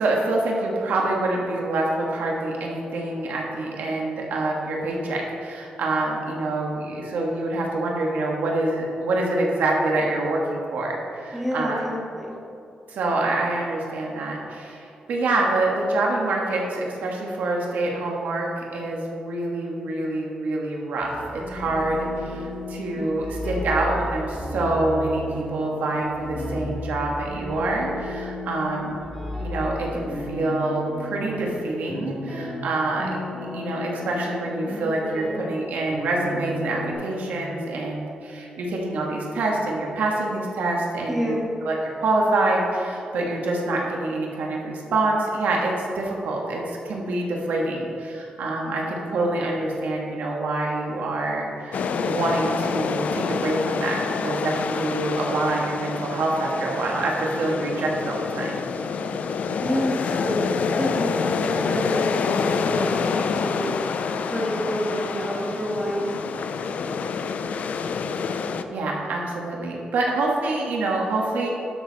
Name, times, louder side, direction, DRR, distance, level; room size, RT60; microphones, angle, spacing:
voice 1, 0.0-11.9 12.9-29.0 29.4-33.1 33.5-41.4 41.6-58.6 68.7-71.5, right 2 dB, 90° right, -1 dB, 1.7 m, -26 dB
voice 2, 11.3-12.4 41.1-41.5 59.6-60.5 60.8-63.7 64.3-66.1, equal, ahead, -4 dB, 2.2 m, -28 dB
sound 1, 21.0-36.9, left 1 dB, 15° left, 2.1 m, -33 dB
sound 2, 51.7-68.6, left 5 dB, 60° left, 0.5 m, -27 dB
12.5 x 6.6 x 4.2 m, 2.7 s
wide cardioid pair, 130°, 3 cm